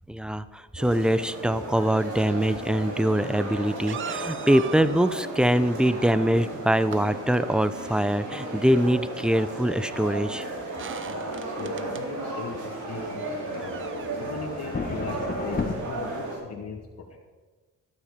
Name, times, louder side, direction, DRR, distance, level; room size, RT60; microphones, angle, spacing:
voice 1, 0.1-10.4, equal, 5° right, 14 dB, 0.7 m, -23 dB
sound 1, 0.8-16.4, right 2 dB, 75° right, 5.2 m, -35 dB
sound 2, 2.7-2.8 3.8-5.2 6.5-7.1 9.6-9.7 10.0-10.1 10.7-12.0 13.1-14.1, right 8 dB, 40° right, 0.7 m, -40 dB
sound 3, 6.0-15.8, left 4 dB, 30° left, 1.7 m, -38 dB
voice 2, 11.0-13.8 14.2-17.2, left 4 dB, 55° left, -3 dB, 2.1 m, -39 dB
13.0 x 12.0 x 5.2 m, 1.3 s
cardioid pair, 90°, 30 cm